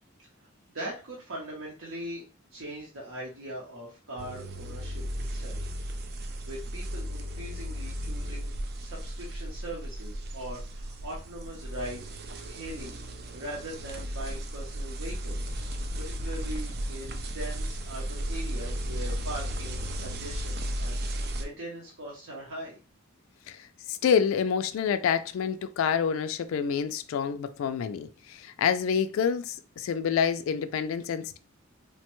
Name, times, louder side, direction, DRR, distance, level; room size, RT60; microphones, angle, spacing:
voice 1, 0.4-2.2 2.5-5.0 5.3-5.6 6.4-8.5 8.8-12.0 12.5-13.0 13.3-15.5 16.1-22.8, right 1 dB, 80° right, 0.8 m, -41 dB
sound 1, 4.2-21.5, equal, 50° right, 0.4 m, -35 dB
voice 2, 23.9-31.4, left 7 dB, 85° left, 0.3 m, -27 dB
3.1 x 2.2 x 3.0 m
head